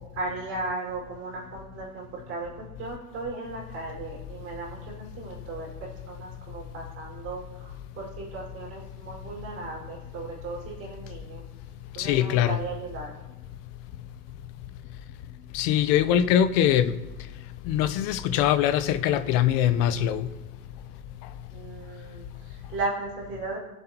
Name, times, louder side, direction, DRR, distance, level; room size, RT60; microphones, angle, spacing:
voice 1, 0.1-5.7 6.1-11.4 11.9-13.1 21.5-23.6, right 3 dB, 30° right, 4.9 m, -36 dB
voice 2, 12.0-12.6 15.5-16.9 17.7-20.3, left 10 dB, 30° left, 0.6 m, -22 dB
22.0 x 7.9 x 2.9 m
supercardioid pair, 140°, 48 cm